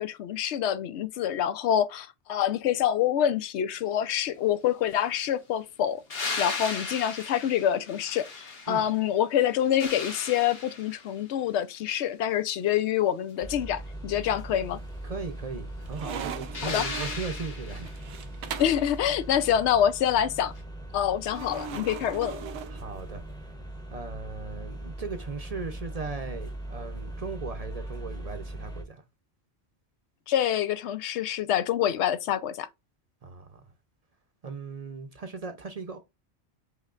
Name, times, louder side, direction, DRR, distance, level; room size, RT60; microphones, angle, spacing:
voice 1, 0.0-6.0 6.4-14.8 16.6-16.9 18.6-20.5 20.9-22.4 30.3-32.7, left 10 dB, 85° left, 0.9 m, -26 dB
sound 1, 6.1-9.0 9.4-11.2 16.5-18.0 20.6-20.7, left 4 dB, 60° left, 1.4 m, -36 dB
sound 2, 13.4-28.8, right 1 dB, 5° left, 0.7 m, -40 dB
sound 3, 14.2-14.8 15.2-18.9 21.3-23.4, right 7 dB, 90° right, 1.0 m, -40 dB
voice 2, 15.0-18.3 22.7-23.2 23.9-29.0 33.2-33.6 34.4-36.0, right 4 dB, 45° right, 0.6 m, -38 dB
5.6 x 3.2 x 2.4 m
omnidirectional pair, 1.1 m